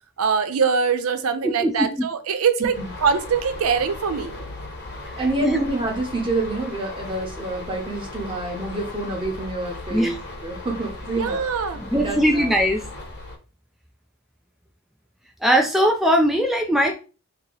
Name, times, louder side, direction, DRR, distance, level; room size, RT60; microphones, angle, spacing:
voice 1, 0.2-2.7 3.0-4.3 11.2-11.8, right 6 dB, 85° right, 9 dB, 0.5 m, -22 dB
voice 2, 1.4-1.9 5.0-5.6 9.9-10.2 11.7-12.9 15.4-16.9, equal, ahead, 2 dB, 0.3 m, -20 dB
sound 1, 2.7-13.4, left 2 dB, 50° left, 1.0 m, -37 dB
voice 3, 5.2-10.2 10.4-11.4 11.9-12.5, right 2 dB, 25° right, 0 dB, 0.9 m, -27 dB
2.9 x 2.8 x 3.8 m, 0.34 s
head